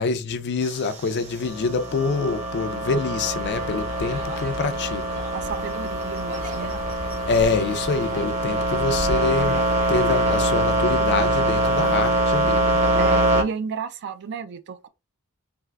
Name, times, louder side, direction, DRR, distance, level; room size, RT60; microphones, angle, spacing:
voice 1, 0.0-5.1 7.3-9.6 9.9-13.0, left 4 dB, 50° left, 0.4 m, -26 dB
sound 1, 0.6-13.4, right 1 dB, 30° right, 0.8 m, -24 dB
Wind instrument woodwind instrument, 1.4-8.1, right 2 dB, ahead, 0.6 m, -40 dB
sound 2, 3.3-13.2, left 1 dB, 70° right, 1.6 m, -38 dB
voice 2, 5.3-6.8 13.0-14.9, right 6 dB, 55° right, 0.3 m, -32 dB
3.4 x 2.5 x 2.2 m
head